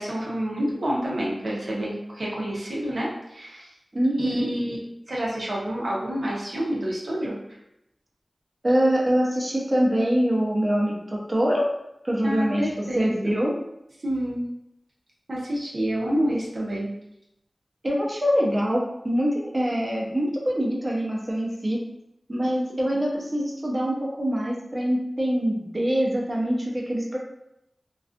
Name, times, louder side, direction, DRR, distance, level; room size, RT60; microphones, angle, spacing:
voice 1, 0.0-3.7 4.2-4.8 5.1-7.4 12.2-13.4 14.0-14.4 15.3-16.9, equal, 70° right, -4 dB, 0.7 m, -28 dB
voice 2, 3.9-4.5 8.6-11.7 12.0-12.7 13.0-13.5 17.8-21.8 22.3-27.2, equal, 35° right, -3 dB, 0.6 m, -24 dB
2.4 x 2.3 x 2.4 m, 0.83 s
wide cardioid pair, 80°, 0 cm